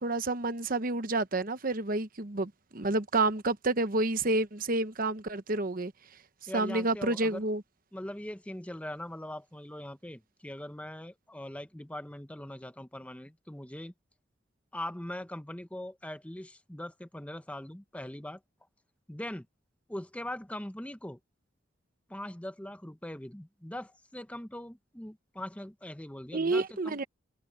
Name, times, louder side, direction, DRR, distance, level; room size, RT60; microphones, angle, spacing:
voice 1, 0.0-5.9 6.4-7.6 26.3-27.1, right 2 dB, 45° right, 1.0 m, -29 dB
voice 2, 6.5-7.4 7.9-13.9 14.7-18.4 19.1-19.5 19.9-21.2 22.1-27.0, left 1 dB, 5° left, 0.8 m, -41 dB
head